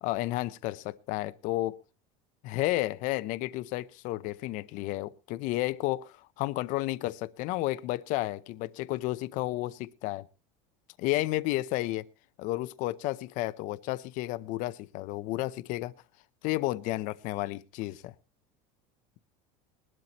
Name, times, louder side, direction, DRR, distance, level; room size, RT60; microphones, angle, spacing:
voice 1, 0.0-1.8 2.4-10.2 11.0-12.1 12.4-15.9 16.4-18.1, left 17 dB, 50° left, 0.7 m, -32 dB
21.0 x 12.0 x 2.9 m
cardioid pair, 155°, 17 cm